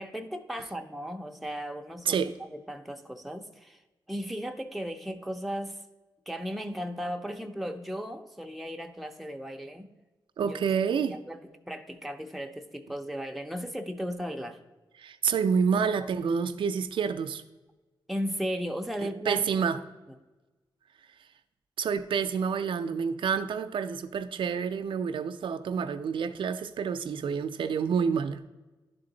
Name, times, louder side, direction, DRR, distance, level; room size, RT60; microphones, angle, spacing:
voice 1, 0.0-2.2 2.5-3.8 4.1-5.8 6.3-9.9 10.4-10.6 10.9-11.4 11.7-14.6 18.1-19.7 20.1-20.2, equal, ahead, 0.5 m, -36 dB
voice 2, 10.4-11.2 15.0-17.4 19.3-19.8 21.8-28.4, right 6 dB, 85° right, 0.4 m, -28 dB
11.0 x 3.8 x 3.8 m
wide cardioid pair, 140°, 8 cm